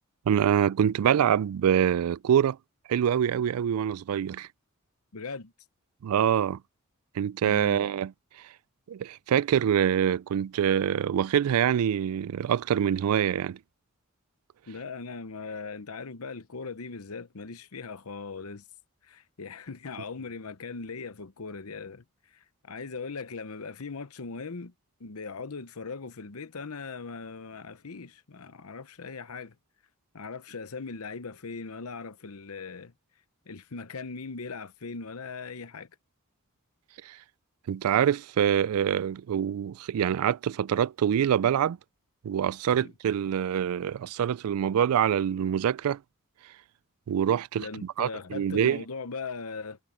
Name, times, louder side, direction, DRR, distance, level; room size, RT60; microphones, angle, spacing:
voice 1, 0.3-2.6 2.9-4.5 6.0-6.6 7.1-8.1 8.9-13.6 37.0-37.2 37.7-41.8 42.2-46.0 47.1-48.8, right 9 dB, 80° right, 0.3 m, -25 dB
voice 2, 5.1-5.5 7.4-7.9 14.7-18.6 19.0-22.0 22.3-24.7 25.0-29.5 30.1-32.9 33.5-35.9 42.8-42.9 47.6-49.8, left 4 dB, 80° left, 0.9 m, -39 dB
head